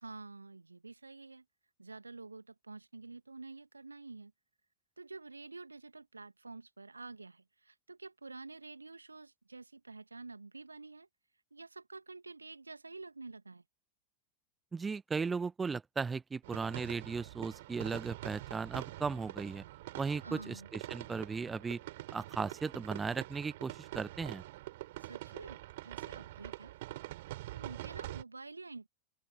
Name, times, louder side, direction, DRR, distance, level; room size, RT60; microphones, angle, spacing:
voice 1, 0.0-1.4 1.8-4.3 5.0-11.1 11.5-13.6 20.2-20.7 25.0-25.6 25.8-26.8 27.5-28.9, right 3 dB, 80° right, 2.2 m, -49 dB
voice 2, 14.7-19.6 19.9-21.8 22.1-24.4, right 5 dB, 15° right, 0.9 m, -36 dB
sound 1, 16.4-28.2, right 17 dB, 55° right, 7.7 m, -45 dB
open air
figure-of-eight pair, 90°, 0 cm